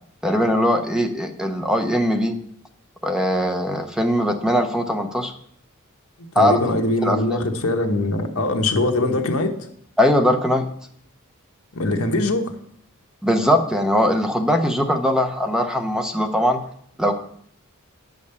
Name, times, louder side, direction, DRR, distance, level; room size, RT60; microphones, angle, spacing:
voice 1, 0.2-2.3 3.0-5.3 6.4-6.6 7.0-7.4 10.0-10.7 13.2-16.6 17.0-17.2, equal, 5° right, 5 dB, 0.8 m, -20 dB
voice 2, 6.3-9.5 11.7-12.5, left 2 dB, 80° left, 4 dB, 1.2 m, -22 dB
9.3 x 5.2 x 7.0 m, 0.66 s
head